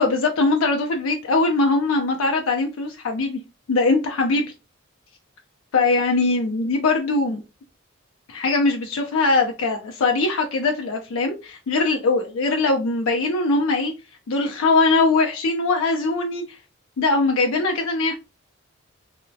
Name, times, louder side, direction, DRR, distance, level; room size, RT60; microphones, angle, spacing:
voice 1, 0.0-3.4 3.7-4.5 5.7-7.4 8.3-13.9 14.3-16.4 17.0-18.1, left 3 dB, 80° left, 0.4 m, -21 dB
3.0 x 2.0 x 2.6 m
head